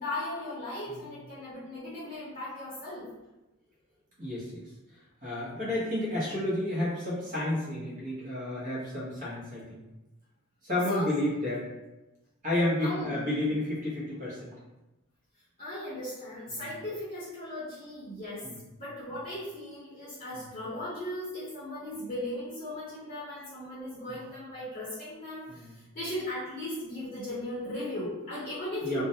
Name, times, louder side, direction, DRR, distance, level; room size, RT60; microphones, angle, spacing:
voice 1, 0.0-3.0 10.9-11.1 12.8-13.2 13.4-13.5 15.6-18.5 18.8-29.1, left 1 dB, 35° left, -10 dB, 0.7 m, -37 dB
voice 2, 4.2-4.6 5.2-9.8 10.6-11.7 12.4-14.6 16.5-16.7 18.4-18.6 20.3-20.4 24.1-24.2 25.5-25.8 28.8-29.0, left 1 dB, 35° right, -7 dB, 0.9 m, -31 dB
2.3 x 2.1 x 2.7 m, 1.0 s
head